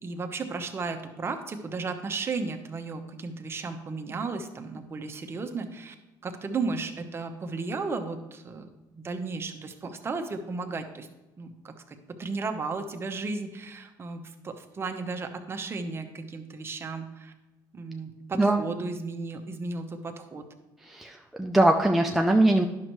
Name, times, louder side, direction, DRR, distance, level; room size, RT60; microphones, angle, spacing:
voice 1, 0.0-5.9 6.2-11.1 11.4-17.3 17.7-20.5, right 4 dB, 30° right, 5 dB, 0.9 m, -34 dB
voice 2, 18.3-18.7 20.8-22.7, right 1 dB, 5° right, 3 dB, 0.4 m, -22 dB
10.5 x 6.4 x 3.1 m, 1.1 s
cardioid pair, 110°, 8 cm